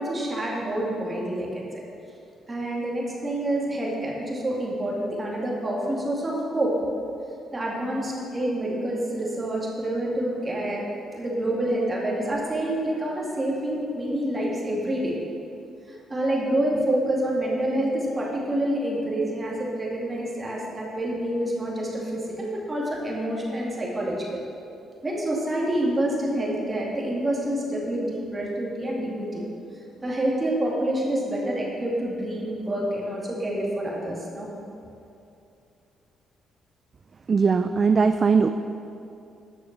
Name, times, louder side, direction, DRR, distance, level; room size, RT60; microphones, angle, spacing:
voice 1, 0.0-1.7 2.5-6.7 7.5-10.8 11.1-15.1 15.9-24.4 25.0-29.5 30.0-34.5, right 1 dB, 25° right, -3 dB, 2.4 m, -27 dB
voice 2, 37.3-38.5, right 5 dB, 40° right, 9 dB, 0.3 m, -19 dB
10.0 x 6.4 x 6.0 m, 2.7 s
cardioid pair, 90°, 0 cm